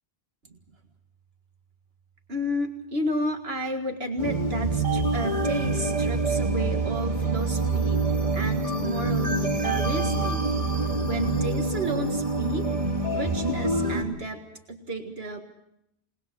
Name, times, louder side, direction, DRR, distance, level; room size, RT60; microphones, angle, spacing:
voice 1, 2.3-8.0 8.3-10.5 11.0-12.7 13.1-14.4 14.7-15.4, equal, 75° right, 4 dB, 2.2 m, -32 dB
sound 1, 4.2-14.0, right 3 dB, 35° right, 2.5 m, -26 dB
28.5 x 20.0 x 6.1 m, 0.78 s
omnidirectional pair, 1.0 m